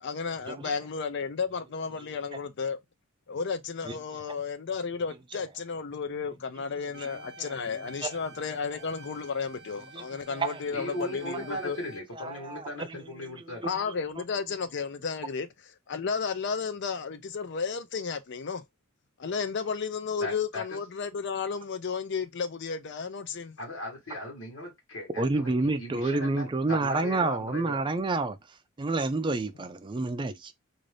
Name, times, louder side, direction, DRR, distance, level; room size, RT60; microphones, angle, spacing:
voice 1, 0.0-2.8 3.3-11.8 13.6-15.5 15.9-18.6 19.2-23.6, left 5 dB, 60° left, 0.5 m, -33 dB
sound 1, 6.9-12.0, right 2 dB, 60° right, 0.7 m, -50 dB
voice 2, 10.7-13.7 20.2-20.6 23.6-27.8, left 1 dB, 90° left, 1.3 m, -38 dB
voice 3, 12.1-13.0 13.4-13.7 25.2-28.4 28.8-30.5, right 3 dB, 25° right, 0.4 m, -29 dB
2.6 x 2.5 x 3.3 m
head